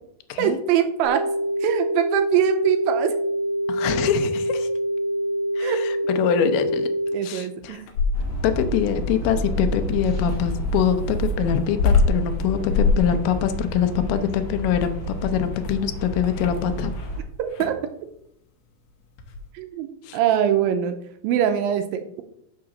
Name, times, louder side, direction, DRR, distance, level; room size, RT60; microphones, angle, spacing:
voice 1, 0.4-1.3 1.6-3.1 5.6-5.8 7.1-7.8 17.4-17.8 19.5-19.9 20.1-21.0 21.2-22.2, right 9 dB, 80° right, 7 dB, 2.3 m, -22 dB
sound 1, 1.0-7.1, equal, 60° right, 2.3 m, -25 dB
voice 2, 3.7-4.7 5.6-6.9 7.2-7.8 8.4-16.9 20.0-20.2, left 9 dB, 90° left, 8 dB, 2.6 m, -24 dB
sound 2, 7.6-8.5 10.3-17.1 17.5-17.9 19.2-19.5, left 4 dB, 70° left, 2.2 m, -25 dB
sound 3, 8.1-17.2, right 2 dB, 35° left, 2.0 m, -29 dB
5.8 x 4.8 x 6.3 m, 0.74 s
omnidirectional pair, 4.2 m